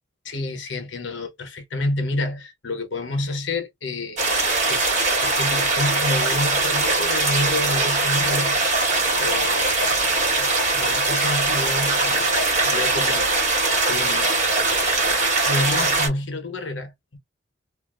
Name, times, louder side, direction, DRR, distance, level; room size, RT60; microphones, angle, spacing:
voice 1, 0.2-4.8 5.2-8.9 9.2-14.3 15.4-17.2, left 2 dB, 80° left, 1.0 m, -29 dB
sound 1, 4.2-16.1, right 3 dB, 40° right, 1.5 m, -21 dB
2.7 x 2.4 x 2.5 m
head